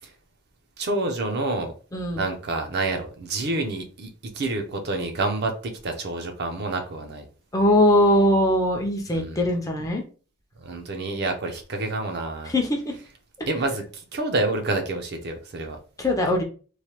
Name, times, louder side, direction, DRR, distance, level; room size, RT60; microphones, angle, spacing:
voice 1, 0.8-1.7 2.1-4.1 4.3-7.3 9.1-9.5 10.6-12.5 13.5-15.8, right 2 dB, 50° right, 0.6 m, -28 dB
voice 2, 7.5-10.0 12.5-13.0 13.4-13.5 16.0-16.4, left 1 dB, 15° left, 0.5 m, -21 dB
3.1 x 2.1 x 2.9 m
head